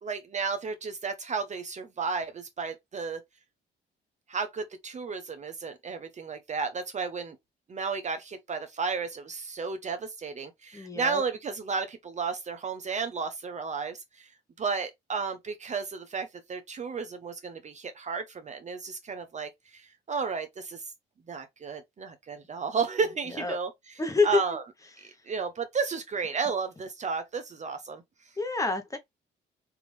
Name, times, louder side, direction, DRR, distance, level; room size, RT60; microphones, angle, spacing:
voice 1, 0.0-3.2 4.3-7.4 7.7-14.3 14.6-20.8 21.3-24.6 25.0-28.0, right 5 dB, 35° right, 0.6 m, -33 dB
voice 2, 10.7-11.2 23.4-23.6 24.0-24.4 28.4-29.0, left 3 dB, 15° left, 0.9 m, -27 dB
3.4 x 2.6 x 3.1 m
cardioid pair, 90°, 20 cm